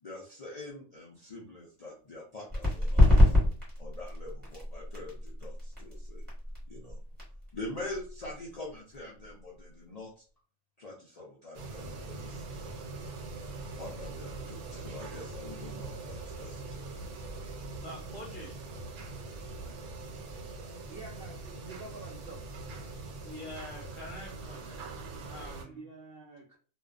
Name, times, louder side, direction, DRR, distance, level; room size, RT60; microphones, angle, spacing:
voice 1, 0.0-3.4 3.8-6.2 6.7-7.0 7.5-10.2 10.8-12.8 13.8-16.9, left 2 dB, 80° left, -5 dB, 0.3 m, -44 dB
sound 1, 2.5-9.8, left 1 dB, 10° right, 1.1 m, -27 dB
sound 2, 11.5-25.6, right 3 dB, 85° right, 1.2 m, -42 dB
voice 2, 17.8-18.6 23.2-25.0 25.3-25.8, left 1 dB, 25° left, -5 dB, 0.7 m, -45 dB
voice 3, 20.9-22.4 25.6-26.6, right 3 dB, 70° right, -1 dB, 0.5 m, -47 dB
2.5 x 2.2 x 2.3 m, 0.40 s
omnidirectional pair, 1.5 m